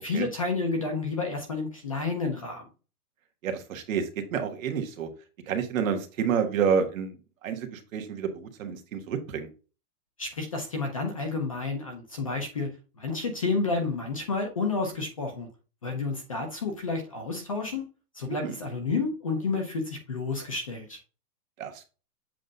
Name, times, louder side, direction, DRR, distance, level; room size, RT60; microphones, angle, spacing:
voice 1, 0.0-2.6 10.2-12.7 13.0-15.5 15.8-17.8 18.1-21.0, left 3 dB, 25° left, 3 dB, 0.5 m, -30 dB
voice 2, 3.4-5.1 5.5-9.5 18.3-18.6 21.6-21.9, right 7 dB, 55° right, 6 dB, 1.4 m, -29 dB
7.5 x 2.6 x 5.3 m, 0.33 s
supercardioid pair, 180°, 46 cm